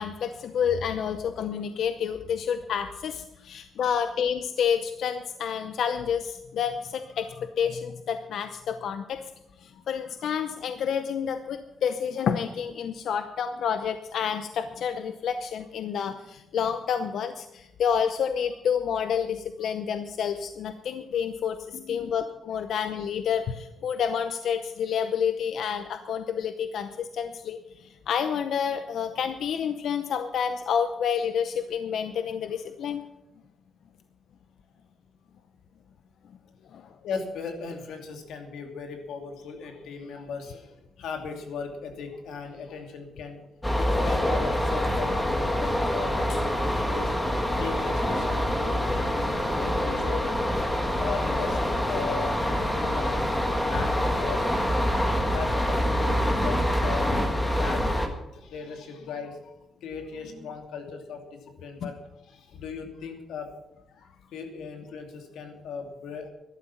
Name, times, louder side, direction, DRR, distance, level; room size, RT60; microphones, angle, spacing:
voice 1, 0.0-9.2 9.6-33.0 36.7-36.9, left 7 dB, 60° left, 9 dB, 0.7 m, -29 dB
voice 2, 37.0-43.4 43.8-50.3 51.0-53.3 53.7-54.9 55.3-59.5 59.8-61.9 62.3-63.5 63.9-66.3, left 5 dB, 90° left, 4 dB, 2.8 m, -38 dB
sound 1, 43.6-58.1, equal, 10° left, 1.5 m, -26 dB
13.0 x 12.0 x 5.9 m, 0.93 s
wide cardioid pair, 180°, 0 cm